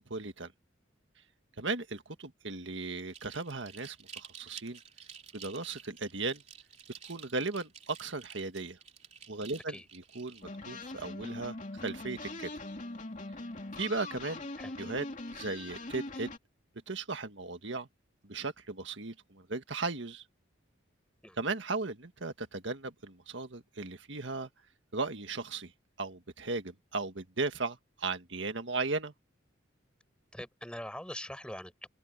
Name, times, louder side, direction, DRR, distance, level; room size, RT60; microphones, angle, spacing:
voice 1, 0.1-0.5 1.6-4.8 5.3-6.4 7.1-8.8 9.3-12.5 13.8-14.5 14.8-15.1 15.3-16.3 16.9-17.9 18.2-20.2 21.4-24.5 24.9-25.7 26.0-29.1, right 3 dB, 70° right, 1.8 m, -36 dB
sound 1, 3.1-10.4, right 7 dB, 35° right, 2.9 m, -51 dB
sound 2, 10.4-16.4, left 2 dB, 40° left, 2.8 m, -42 dB
voice 2, 30.3-31.9, left 1 dB, 5° left, 7.6 m, -42 dB
open air
head